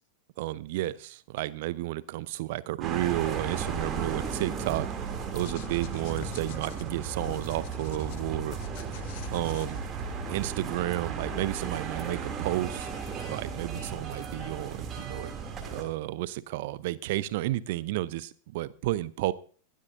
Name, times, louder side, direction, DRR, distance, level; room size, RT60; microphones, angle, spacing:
voice 1, 0.4-4.9 5.3-8.6 9.3-9.8 10.3-12.9 13.2-15.4 15.7-19.3, right 16 dB, 50° right, 19 dB, 0.7 m, -32 dB
sound 1, 2.8-15.8, right 5 dB, 25° right, 2.8 m, -35 dB
sound 2, 5.3-10.1, left 13 dB, 50° left, 0.8 m, -46 dB
21.5 x 12.5 x 2.6 m, 0.41 s
figure-of-eight pair, 90°, 0 cm